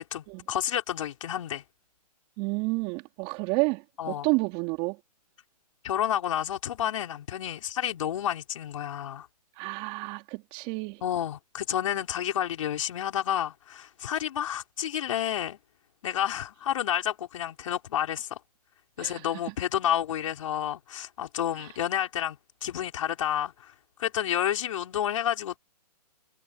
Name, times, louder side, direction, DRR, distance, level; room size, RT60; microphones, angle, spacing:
voice 1, 0.0-1.6 4.0-4.3 5.8-9.3 11.0-15.6 16.0-18.4 19.0-23.7 24.0-25.6, left 10 dB, 50° left, 5.7 m, -30 dB
voice 2, 2.4-5.0 9.6-11.0 19.0-19.3 21.6-21.7, right 27 dB, 25° right, 4.3 m, -30 dB
hypercardioid pair, 155°, 21 cm